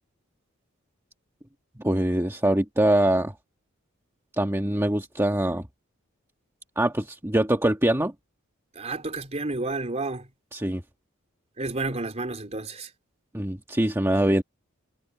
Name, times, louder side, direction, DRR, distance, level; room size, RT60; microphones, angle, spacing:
voice 1, 1.8-3.3 4.4-5.7 6.8-8.1 10.5-10.8 13.3-14.4, right 1 dB, 10° right, 1.4 m, -23 dB
voice 2, 8.8-10.3 11.6-12.9, right 2 dB, 35° right, 3.5 m, -31 dB
head